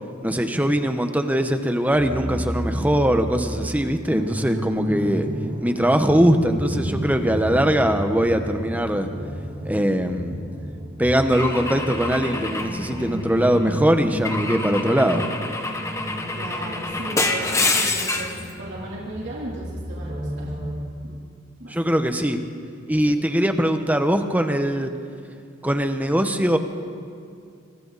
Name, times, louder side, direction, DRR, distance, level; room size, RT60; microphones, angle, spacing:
voice 1, 0.2-5.3 5.6-9.1 9.6-10.4 11.0-15.3 21.7-22.4 22.9-24.9 25.6-26.6, equal, 10° right, 7 dB, 1.1 m, -21 dB
sound 1, 1.9-20.8, equal, 25° right, 2.5 m, -31 dB
Car / Engine / Glass, 11.3-13.5 14.2-18.4, left 3 dB, 15° left, 1.4 m, -27 dB
voice 2, 16.3-18.3 18.6-20.5 21.0-21.2 21.6-21.9 23.0-23.1, right 1 dB, 60° right, -6 dB, 3.4 m, -36 dB
27.0 x 25.5 x 4.2 m, 2.4 s
head